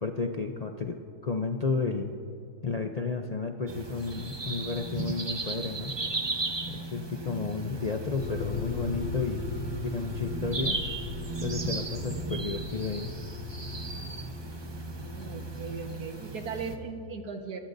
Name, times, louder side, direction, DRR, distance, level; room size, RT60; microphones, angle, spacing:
voice 1, 0.0-2.1 2.6-6.0 6.7-9.5 9.8-10.8 11.4-13.1, left 4 dB, 65° left, 3 dB, 0.4 m, -32 dB
sound 1, 3.7-16.8, right 2 dB, 25° right, 0.7 m, -36 dB
sound 2, 8.2-15.8, left 2 dB, 5° left, 3.5 m, -38 dB
voice 2, 14.9-17.6, right 4 dB, 75° right, 4 dB, 1.9 m, -38 dB
26.0 x 18.5 x 2.6 m, 2.7 s
omnidirectional pair, 1.7 m